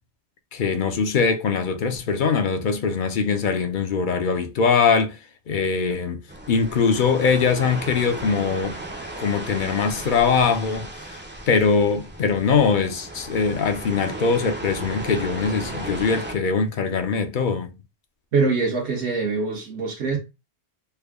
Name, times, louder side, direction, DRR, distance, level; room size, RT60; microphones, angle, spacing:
voice 1, 0.5-5.2 5.5-6.2 6.5-8.8 9.2-11.2 11.5-17.7, left 5 dB, 55° left, 0.6 m, -22 dB
sound 1, 6.3-16.3, right 1 dB, 15° right, 0.3 m, -35 dB
voice 2, 18.3-20.2, right 4 dB, 75° right, 1.0 m, -23 dB
3.4 x 2.2 x 3.4 m
omnidirectional pair, 1.1 m